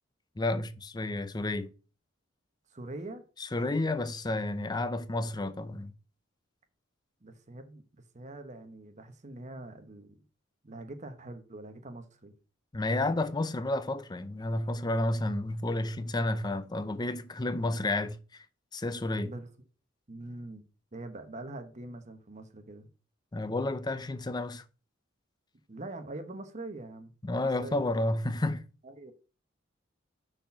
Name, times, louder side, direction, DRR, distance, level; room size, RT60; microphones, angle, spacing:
voice 1, 0.4-1.7 3.4-5.9 12.7-18.4 18.7-19.3 23.3-24.6 27.2-28.6, left 2 dB, 20° left, 0.5 m, -31 dB
voice 2, 2.7-3.2 7.2-10.2 10.6-12.3 19.2-19.5 20.1-20.6 20.9-22.9 25.7-27.1 27.4-27.8 28.8-29.1, right 2 dB, 35° right, 1.0 m, -43 dB
6.2 x 4.2 x 5.7 m
head